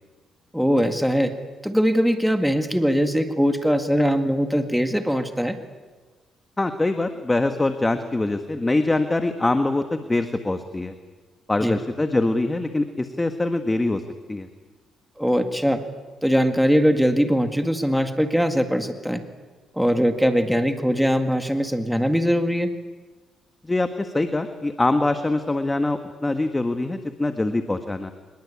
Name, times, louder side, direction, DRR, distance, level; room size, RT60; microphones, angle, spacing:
voice 1, 0.5-1.3 1.6-5.6 11.6-11.8 15.2-15.8 16.2-19.2 19.7-22.7, equal, ahead, 6 dB, 1.9 m, -21 dB
voice 2, 6.6-10.9 11.5-14.0 14.3-14.5 23.6-28.1, left 2 dB, 15° left, 7 dB, 1.5 m, -23 dB
25.0 x 21.5 x 8.6 m, 1.3 s
cardioid pair, 90°, 0 cm